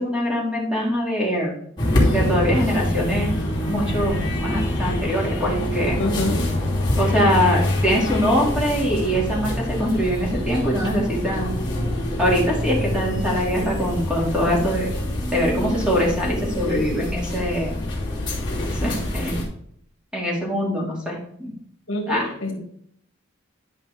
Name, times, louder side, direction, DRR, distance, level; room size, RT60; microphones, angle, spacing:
voice 1, 0.0-1.5 2.1-3.3 3.7-6.0 7.0-11.6 12.2-14.9 15.3-17.8 18.6-19.3 20.1-21.5 22.1-22.6, equal, 5° right, -3 dB, 2.3 m, -23 dB
sound 1, 1.8-19.4, left 1 dB, 20° left, 2.8 m, -25 dB
voice 2, 6.0-6.5 21.9-22.6, left 1 dB, 65° left, 2 dB, 1.8 m, -26 dB
10.5 x 5.6 x 3.4 m, 0.67 s
head